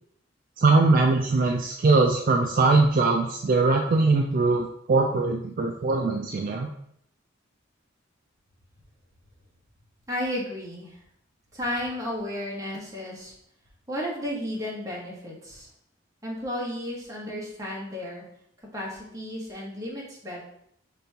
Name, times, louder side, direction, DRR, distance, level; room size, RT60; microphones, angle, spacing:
voice 1, 0.6-6.7, right 3 dB, 45° right, 2 dB, 0.3 m, -21 dB
voice 2, 10.1-11.0 11.5-13.3 13.9-15.7 16.2-18.2 18.7-20.4, left 1 dB, 15° right, -4 dB, 1.2 m, -33 dB
5.3 x 3.3 x 2.9 m, 0.71 s
head